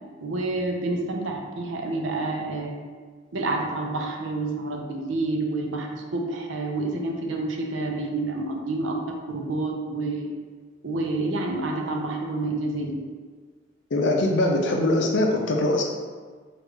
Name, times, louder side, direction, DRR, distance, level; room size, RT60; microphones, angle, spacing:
voice 1, 0.2-2.8 3.3-9.0 9.3-10.3 10.8-12.9, right 2 dB, 75° right, 1 dB, 0.5 m, -28 dB
voice 2, 13.9-15.8, left 1 dB, 65° left, 1 dB, 0.5 m, -22 dB
3.2 x 2.4 x 3.4 m, 1.5 s
head